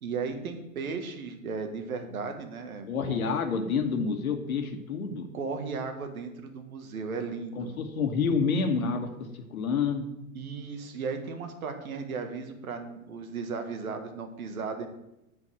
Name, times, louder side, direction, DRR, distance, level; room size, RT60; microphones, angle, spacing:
voice 1, 0.0-3.2 5.3-7.7 10.3-14.9, right 5 dB, 75° right, 6 dB, 1.7 m, -35 dB
voice 2, 2.9-5.3 7.5-9.1 9.5-10.1, left 5 dB, 80° left, 6 dB, 1.5 m, -28 dB
8.0 x 5.2 x 7.5 m, 0.87 s
hypercardioid pair, 110°, 42 cm